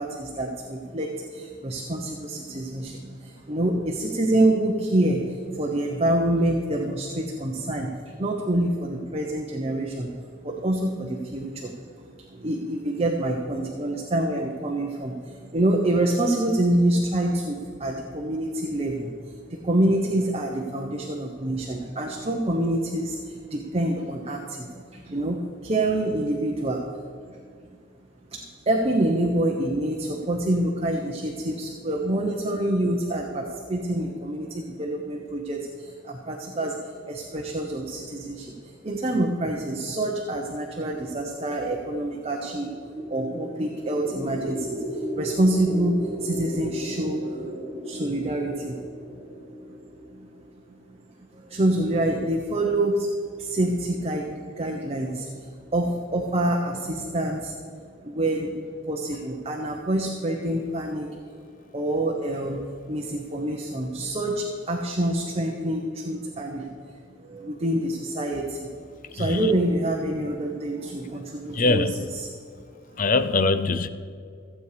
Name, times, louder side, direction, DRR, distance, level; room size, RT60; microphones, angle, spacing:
voice 1, 0.0-27.0 27.3-27.4 28.3-42.7 43.1-47.4 47.8-48.8 50.1-50.3 50.9-51.0 51.3-53.1 53.4-57.6 58.0-58.6 58.9-61.3 61.7-68.7 69.1-72.3, right 1 dB, 30° right, 1 dB, 1.0 m, -27 dB
sound 1, 42.5-50.6, equal, 5° right, 1.4 m, -35 dB
voice 2, 71.5-71.9 73.0-73.9, left 3 dB, 45° left, 12 dB, 0.5 m, -22 dB
15.5 x 8.2 x 5.1 m, 2.2 s
head